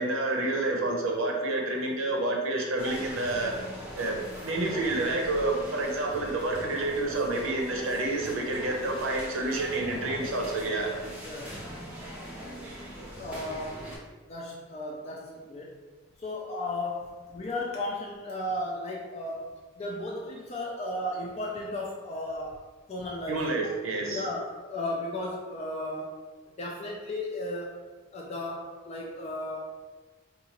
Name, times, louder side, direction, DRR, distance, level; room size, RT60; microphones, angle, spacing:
voice 1, 0.0-3.5 4.0-10.9 23.3-24.2, right 2 dB, 75° right, 0 dB, 0.6 m, -29 dB
sound 1, 2.8-14.0, equal, 5° right, 0.7 m, -41 dB
voice 2, 13.2-13.9 14.3-15.8 16.2-22.6 22.9-23.6 24.1-26.2 26.6-27.8 28.1-29.6, left 1 dB, 30° left, -2 dB, 0.3 m, -35 dB
3.8 x 2.4 x 2.9 m, 1.3 s
head